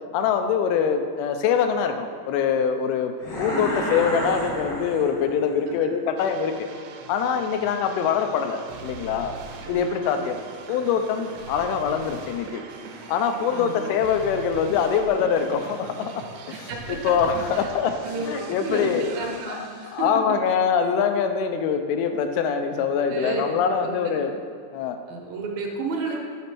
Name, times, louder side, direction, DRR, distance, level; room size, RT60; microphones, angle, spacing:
voice 1, 0.1-3.1 3.4-6.7 7.1-9.3 9.7-10.4 10.7-12.6 13.1-19.1 19.5-19.7 19.9-24.3 24.7-25.0, left 7 dB, 85° left, 7 dB, 2.6 m, -24 dB
sound 1, 3.2-5.5, equal, 55° left, 1.2 m, -30 dB
sound 2, 6.2-20.1, right 4 dB, 90° right, 2.8 m, -41 dB
voice 2, 13.5-13.9 16.5-17.1 17.5-17.7 18.0-20.1 23.1-23.5 23.8-24.3 25.1-26.2, right 3 dB, 70° right, 0 dB, 2.6 m, -32 dB
8.6 x 4.3 x 6.0 m, 2.2 s
omnidirectional pair, 4.6 m